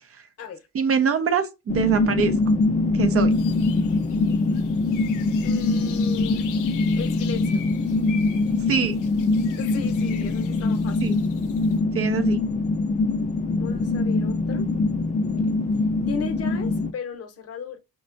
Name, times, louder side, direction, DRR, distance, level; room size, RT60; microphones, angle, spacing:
voice 1, 0.7-2.6 2.9-3.4 8.7-9.0 11.0-11.2 11.9-12.4, right 6 dB, 50° right, 0.6 m, -24 dB
sound 1, 1.7-16.9, left 3 dB, 25° left, 0.4 m, -23 dB
sound 2, 3.3-11.8, left 9 dB, 85° left, 0.5 m, -43 dB
voice 2, 5.4-6.4 7.0-7.6 9.6-11.0 13.6-14.7 15.3-15.4 16.1-17.8, left 6 dB, 55° left, 0.7 m, -35 dB
5.0 x 2.2 x 2.5 m
cardioid pair, 90°, 30 cm